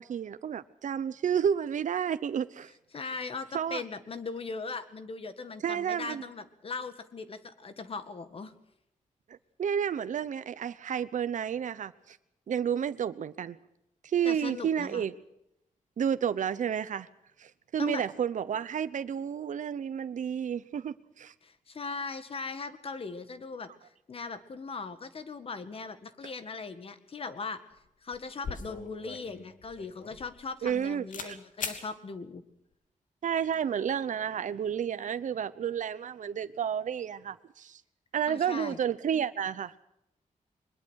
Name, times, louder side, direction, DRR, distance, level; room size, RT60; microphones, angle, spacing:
voice 1, 0.0-2.7 3.5-3.8 5.6-6.2 9.3-12.2 12.5-13.6 14.0-15.1 16.0-17.1 17.4-21.3 30.6-31.4 33.2-37.8 38.1-39.8, right 8 dB, 65° right, 0.9 m, -31 dB
voice 2, 2.9-8.5 14.2-15.0 17.8-18.0 21.4-23.7 24.1-27.6 28.0-32.4 38.3-38.8, left 4 dB, 45° left, 1.9 m, -39 dB
sound 1, 27.7-27.8 28.1-30.8 31.1-31.3 31.6-31.8, left 5 dB, 75° left, 3.0 m, -40 dB
22.5 x 21.0 x 6.4 m
wide cardioid pair, 165°, 14 cm